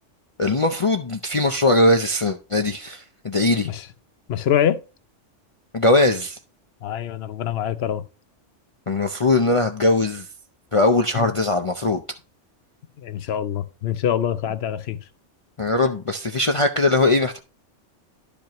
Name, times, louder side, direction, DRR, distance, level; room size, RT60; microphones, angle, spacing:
voice 1, 0.4-3.7 5.7-6.4 8.9-10.3 10.7-12.0 15.6-17.4, left 2 dB, 40° left, 0.5 m, -20 dB
voice 2, 4.3-4.8 6.8-8.0 11.1-11.3 13.0-15.0, left 9 dB, 65° left, 0.9 m, -24 dB
12.0 x 5.2 x 3.0 m
omnidirectional pair, 1.2 m